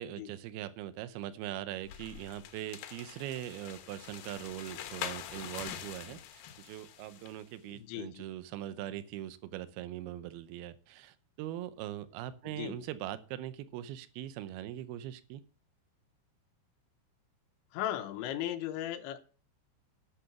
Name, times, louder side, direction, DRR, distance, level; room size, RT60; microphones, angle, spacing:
voice 1, 0.0-15.4, right 12 dB, 80° right, 13 dB, 2.4 m, -41 dB
sound 1, 1.8-7.4, left 11 dB, 70° left, 2.3 m, -44 dB
voice 2, 7.7-8.2 12.5-12.8 17.7-19.2, left 12 dB, 85° left, 8 dB, 3.2 m, -37 dB
12.0 x 6.6 x 5.9 m, 0.38 s
omnidirectional pair, 5.2 m